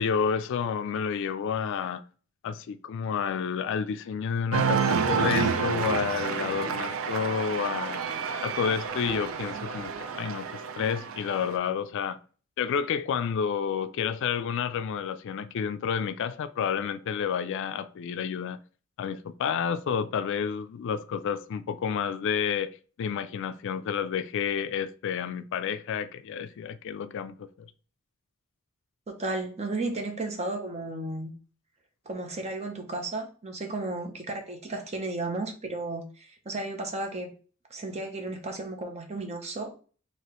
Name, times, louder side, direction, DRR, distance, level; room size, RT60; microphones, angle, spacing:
voice 1, 0.0-2.0 2.4-8.0 8.4-12.2 12.6-18.6 19.0-27.7, left 7 dB, 60° left, 0.3 m, -30 dB
Cheering, 4.5-11.5, right 6 dB, 70° right, 0.4 m, -29 dB
voice 2, 29.1-31.3 32.1-37.3 37.7-39.7, right 2 dB, 30° right, 0.8 m, -34 dB
4.8 x 2.9 x 3.0 m
head